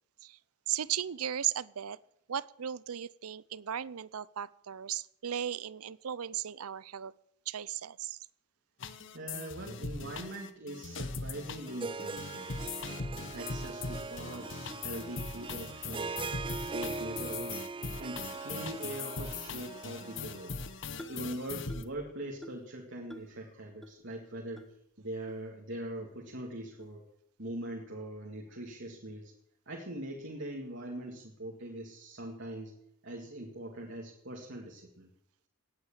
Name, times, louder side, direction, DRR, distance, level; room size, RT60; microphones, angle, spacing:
voice 1, 0.7-2.0 2.3-7.1 7.5-8.2 20.9-21.3, right 10 dB, 90° right, 21 dB, 0.6 m, -36 dB
sound 1, 8.8-21.8, left 4 dB, 55° left, 1.2 m, -40 dB
voice 2, 9.1-16.2 16.6-17.6 18.0-20.5 21.1-27.1 27.4-29.3 29.7-32.8 33.0-35.1, right 1 dB, 55° right, 0 dB, 2.2 m, -42 dB
Harp, 11.7-20.7, right 4 dB, 25° right, 0.5 m, -41 dB
sound 2, 21.0-21.3 21.7-22.0 22.4-22.7 23.1-23.4 23.8-23.9 24.6-24.7 25.3-25.4 26.1-26.2 26.8-27.0, equal, ahead, 1.0 m, -48 dB
17.5 x 9.7 x 7.4 m, 0.75 s
head